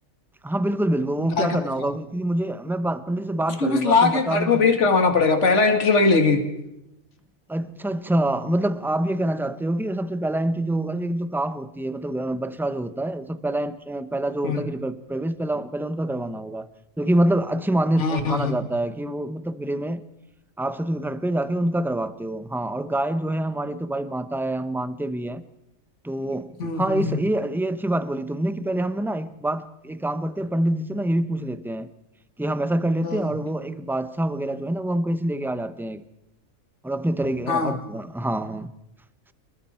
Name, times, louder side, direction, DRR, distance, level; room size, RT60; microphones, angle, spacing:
voice 1, 0.4-4.8 7.5-16.7 17.0-20.0 20.6-25.4 26.0-31.9 32.4-36.0 36.8-38.7, right 1 dB, ahead, 0.6 m, -26 dB
voice 2, 1.2-1.6 3.6-6.4 14.4-14.6 18.0-18.5 26.6-27.2 33.0-33.2 37.5-37.7, left 4 dB, 55° left, 2.5 m, -20 dB
29.0 x 21.0 x 4.4 m
omnidirectional pair, 1.5 m